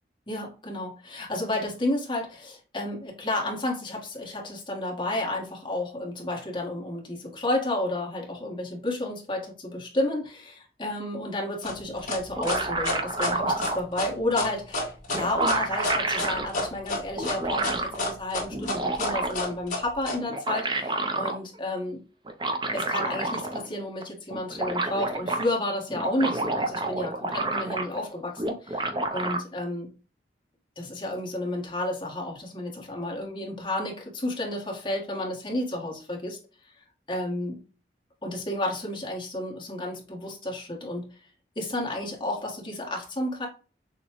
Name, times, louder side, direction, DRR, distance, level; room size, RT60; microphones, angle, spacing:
voice 1, 0.3-22.0 22.7-29.9 30.8-36.4 36.8-37.6 38.2-41.1 41.5-43.5, left 1 dB, 30° left, -1 dB, 1.3 m, -31 dB
sound 1, 11.6-20.2, left 2 dB, 45° left, 2.1 m, -30 dB
sound 2, 12.1-13.8 14.8-14.9 15.1-16.5 17.2-18.0 18.5-19.5 20.2-21.4 22.3-23.7 24.0-24.1 24.3-25.5 25.9-28.1 28.4-29.4, right 2 dB, 25° right, 0.6 m, -29 dB
6.4 x 2.3 x 3.0 m, 0.34 s
head